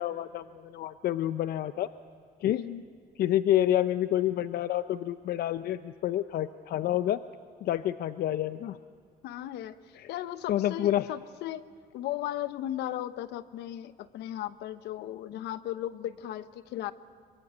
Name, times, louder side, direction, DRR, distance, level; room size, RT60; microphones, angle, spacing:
voice 1, 0.0-1.9 2.4-2.6 3.2-7.2 7.6-8.8 10.0-10.1 10.5-11.1, left 12 dB, 65° left, 12 dB, 0.6 m, -28 dB
voice 2, 9.2-16.9, left 12 dB, 80° left, 13 dB, 1.0 m, -36 dB
24.5 x 23.5 x 8.2 m, 2.2 s
cardioid pair, 110°, 17 cm